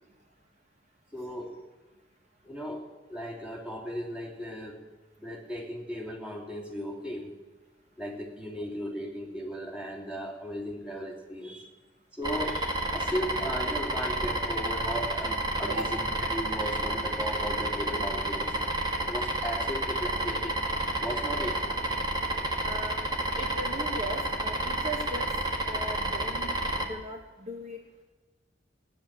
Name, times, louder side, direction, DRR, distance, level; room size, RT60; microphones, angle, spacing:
voice 1, 1.1-1.6 2.4-4.8 5.2-7.3 8.0-11.7 12.1-18.6 19.0-20.6 21.0-21.7, equal, 5° right, -2 dB, 2.9 m, -36 dB
sound 1, 12.2-26.9, right 1 dB, 25° right, 1.7 m, -30 dB
voice 2, 22.6-23.1 23.4-25.3 25.7-27.8, right 1 dB, 40° right, 2 dB, 1.5 m, -38 dB
17.0 x 10.5 x 7.4 m, 1.2 s
head